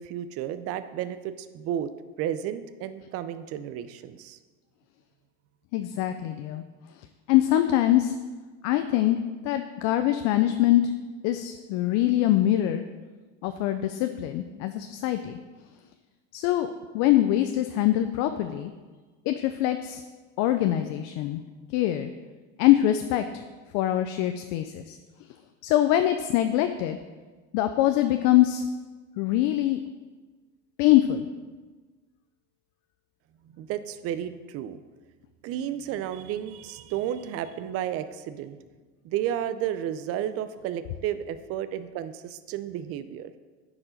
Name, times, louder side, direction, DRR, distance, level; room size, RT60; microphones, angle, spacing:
voice 1, 0.0-1.9 2.2-4.4 33.5-34.8 35.4-38.6 39.0-43.3, right 10 dB, 45° right, 12 dB, 0.5 m, -32 dB
voice 2, 5.7-6.6 7.3-8.1 8.6-9.2 9.4-10.8 11.2-12.8 13.4-15.4 16.3-16.7 16.9-18.7 19.3-20.0 20.4-21.4 21.7-22.1 22.6-23.2 23.7-25.0 25.6-27.0 27.5-28.6 29.2-29.8 30.8-31.3, left 13 dB, 60° left, 8 dB, 0.5 m, -23 dB
9.6 x 4.9 x 5.1 m, 1.3 s
supercardioid pair, 130°, 33 cm